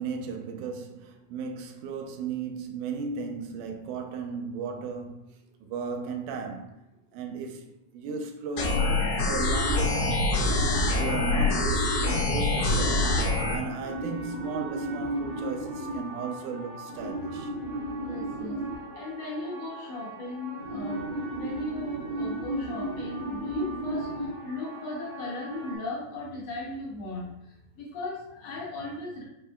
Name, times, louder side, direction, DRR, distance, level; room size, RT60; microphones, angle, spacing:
voice 1, 0.0-5.2 5.6-6.8 7.1-9.0 9.3-10.4 11.0-13.1 13.5-17.5, right 4 dB, 85° right, 2.0 m, -35 dB
sound 1, 8.6-13.6, left 2 dB, 85° left, 2.3 m, -25 dB
sound 2, 13.8-25.7, right 1 dB, 65° right, 2.0 m, -35 dB
voice 2, 18.0-18.6 18.9-29.2, left 2 dB, 65° left, 1.8 m, -37 dB
5.4 x 3.6 x 2.2 m
omnidirectional pair, 3.5 m